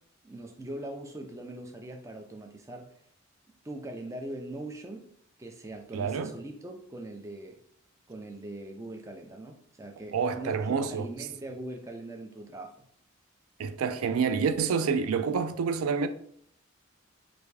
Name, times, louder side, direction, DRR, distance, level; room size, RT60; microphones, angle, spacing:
voice 1, 0.2-2.9 3.6-5.1 5.4-7.6 8.1-12.7, right 1 dB, 15° right, 0.3 m, -41 dB
voice 2, 5.9-6.3 10.1-11.1 13.6-16.1, right 6 dB, 90° right, 0.4 m, -28 dB
3.3 x 2.6 x 3.2 m
head